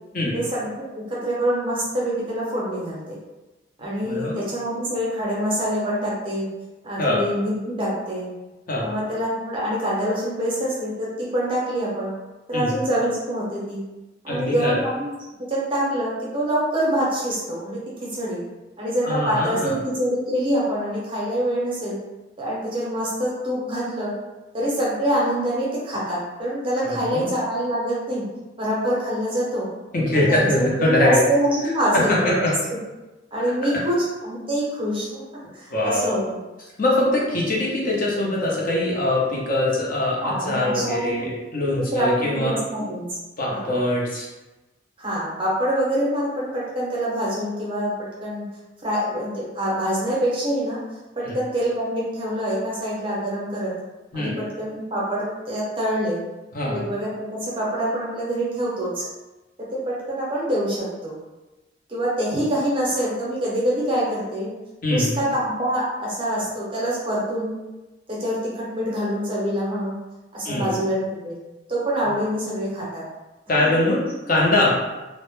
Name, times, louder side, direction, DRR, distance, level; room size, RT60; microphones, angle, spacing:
voice 1, 0.3-3.2 3.8-6.5 6.8-8.3 8.8-12.1 12.5-13.8 14.2-15.1 15.5-18.4 18.8-22.0 22.4-24.1 24.5-28.2 28.6-29.7 30.1-32.8 33.3-35.2 35.5-36.4 40.2-41.3 41.7-43.0 43.5-43.8 45.0-47.9 48.2-48.4 48.8-50.8 51.1-53.7 54.1-56.2 56.6-59.0 59.6-61.2 61.9-64.5 64.9-67.5 68.1-69.9 70.3-71.4 71.7-73.0 73.6-73.7, equal, 25° right, -6 dB, 0.6 m, -25 dB
voice 2, 4.0-4.4 7.0-7.2 8.7-8.9 12.5-12.7 14.3-14.7 19.0-19.7 26.8-27.3 29.9-31.2 31.9-32.2 32.4-32.5 35.7-36.1 36.8-40.2 40.5-42.6 43.4-44.3 51.2-51.3 54.1-54.3 56.5-56.8 64.8-65.1 70.4-70.7 73.5-74.7, left 1 dB, 45° left, -4 dB, 0.5 m, -22 dB
2.1 x 2.0 x 3.0 m, 1.1 s
head